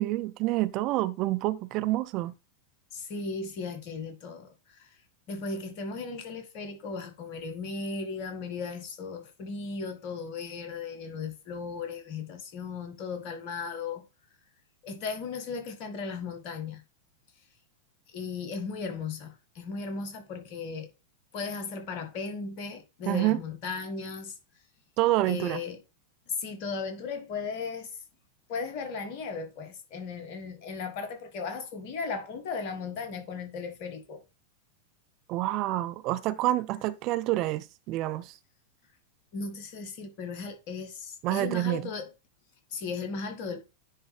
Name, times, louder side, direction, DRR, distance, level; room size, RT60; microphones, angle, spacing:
voice 1, 0.0-2.3 23.1-23.4 25.0-25.6 35.3-38.3 41.2-41.8, right 16 dB, 40° right, 0.4 m, -27 dB
voice 2, 2.9-4.9 5.3-14.0 14.8-16.8 18.1-20.9 21.3-24.4 25.3-25.8 26.3-28.0 28.5-34.2 36.7-36.8 39.3-42.1 42.7-43.6, left 4 dB, 45° left, 1.8 m, -36 dB
9.8 x 3.8 x 3.4 m
figure-of-eight pair, 90°, 0 cm